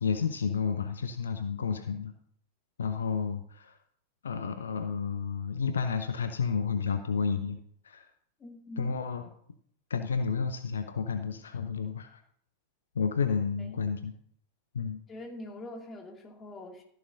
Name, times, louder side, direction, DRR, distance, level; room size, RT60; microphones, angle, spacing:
voice 1, 0.0-2.1 2.8-3.8 4.2-8.1 8.8-9.3 9.9-12.2 12.9-14.1 14.7-15.0, left 6 dB, 70° left, 8 dB, 0.7 m, -31 dB
voice 2, 8.4-8.9 13.6-13.9 15.1-16.8, left 1 dB, 20° left, 2 dB, 2.4 m, -44 dB
14.0 x 10.5 x 2.7 m, 0.65 s
figure-of-eight pair, 90°, 0 cm